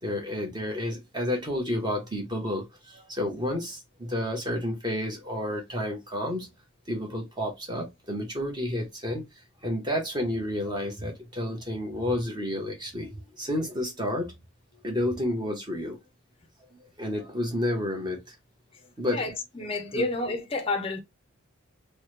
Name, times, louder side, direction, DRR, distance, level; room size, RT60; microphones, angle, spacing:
voice 1, 0.0-6.5 6.9-9.2 9.6-14.4 14.8-16.0 17.0-18.3 19.0-19.3 19.9-20.1, left 1 dB, 20° right, 0.9 m, -30 dB
voice 2, 19.1-21.0, left 2 dB, 25° left, 0.5 m, -30 dB
3.1 x 2.1 x 3.1 m
head